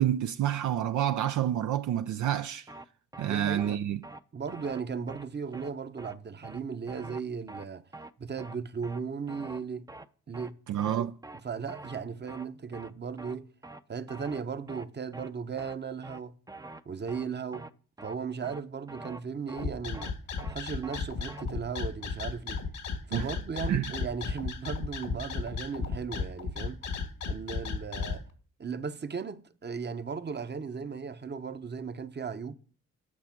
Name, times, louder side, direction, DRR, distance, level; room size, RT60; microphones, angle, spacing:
voice 1, 0.0-2.7 3.2-4.0 10.7-11.1 23.1-23.3 23.7-23.9, right 11 dB, 70° right, 0.5 m, -28 dB
sound 1, 2.2-2.4 2.7-2.8 3.1-3.3 3.6-3.7 4.0-4.2 4.5-4.8 5.1-5.2 5.5-5.7 6.0-6.1 6.4-6.6 6.9-7.2 7.5-7.6 7.9-8.1 8.4-8.6 8.8-9.0 9.3-9.6 9.9-10.1 10.3-10.5 10.8-11.0 11.2-11.4 11.7-12.0 12.3-12.5 12.7-12.9 13.2-13.3 13.6-13.8 14.1-14.4 14.7-14.8 15.1-15.3 15.6-15.7 16.0-16.2 16.5-16.8 17.1-17.3 17.5-17.7 18.0-18.1 18.4-18.6 18.9-19.2 19.5-19.6 19.9-20.1 20.4-20.6 20.8-21.0 21.3-21.4, right 2 dB, 10° right, 0.6 m, -45 dB
voice 2, 3.2-3.8 4.3-7.9 8.2-9.9 10.3-10.6 10.8-11.1 11.4-13.5 13.9-16.3 16.9-17.7 18.0-20.2 20.5-22.6 23.1-26.8 27.2-28.2 28.6-32.6, right 6 dB, 35° right, 0.9 m, -36 dB
sound 2, 19.6-28.2, left 5 dB, 80° left, 1.7 m, -34 dB
8.5 x 6.4 x 5.9 m
supercardioid pair, 55°, 32 cm